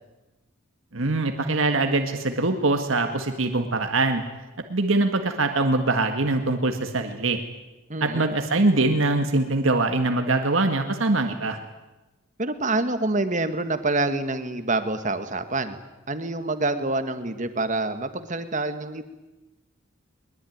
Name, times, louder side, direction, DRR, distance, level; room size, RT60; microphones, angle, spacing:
voice 1, 0.9-4.2 4.7-7.4 8.0-11.6, right 2 dB, 70° right, 6 dB, 1.8 m, -23 dB
voice 2, 7.9-8.3 12.4-15.8 16.1-19.0, right 2 dB, 35° right, 9 dB, 1.7 m, -26 dB
22.0 x 21.5 x 9.4 m, 1.1 s
head